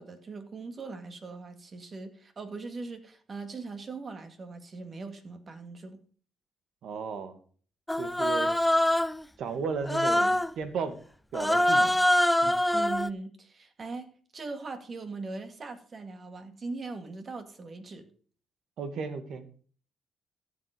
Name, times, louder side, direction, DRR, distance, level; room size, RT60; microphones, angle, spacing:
voice 1, 0.0-6.0 12.7-14.1 14.3-18.1, right 3 dB, 40° right, 8 dB, 2.3 m, -40 dB
voice 2, 6.8-7.4 8.0-8.5 9.4-11.0 11.3-12.0 12.4-12.5 18.8-19.4, right 5 dB, 70° right, 10 dB, 2.1 m, -34 dB
Human voice, 7.9-9.2 9.9-10.5 11.3-13.1, left 1 dB, 5° left, 0.5 m, -24 dB
14.0 x 7.7 x 5.2 m, 0.43 s
cardioid pair, 90°, 0 cm